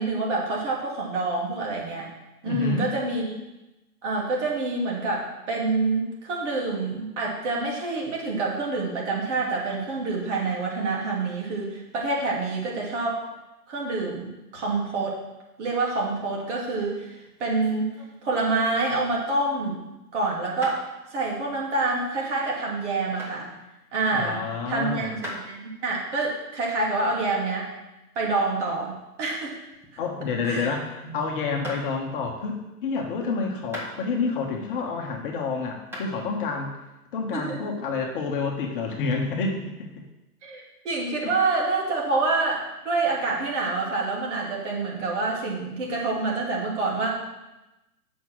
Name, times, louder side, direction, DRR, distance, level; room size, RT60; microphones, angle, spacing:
voice 1, 0.0-2.1 2.4-3.4 4.0-13.2 13.7-15.2 15.6-17.9 18.2-19.8 20.1-23.5 23.9-27.7 28.1-29.5 30.4-30.7 37.3-37.7 40.4-47.2, right 3 dB, 50° right, -2 dB, 3.1 m, -27 dB
voice 2, 2.4-2.9 24.1-25.2 30.0-36.7 37.1-39.9 41.2-41.3, left 4 dB, 35° left, 1 dB, 1.4 m, -29 dB
sound 1, 17.2-19.3 20.6-20.8 23.2-23.4 25.2-25.5 28.7-30.1 30.4-30.8 31.6-31.8 33.7-34.4 34.9-35.4 35.9-36.1, equal, 5° right, 1.3 m, -39 dB
8.0 x 6.3 x 6.3 m, 0.98 s
hypercardioid pair, 145°, 46 cm